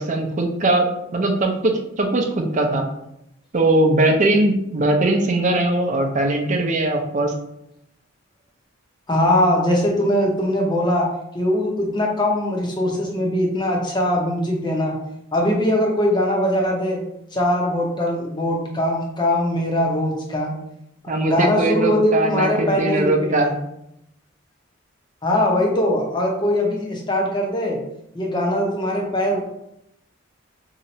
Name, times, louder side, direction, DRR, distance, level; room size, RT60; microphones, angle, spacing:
voice 1, 0.0-2.9 3.5-7.3 21.1-23.5, right 2 dB, 35° right, 3 dB, 0.5 m, -20 dB
voice 2, 9.1-11.1 11.3-15.0 15.3-17.0 17.3-20.5 21.0-23.5 25.2-27.8 28.1-29.5, left 1 dB, 20° left, -1 dB, 0.7 m, -21 dB
2.8 x 2.5 x 4.1 m, 0.79 s
head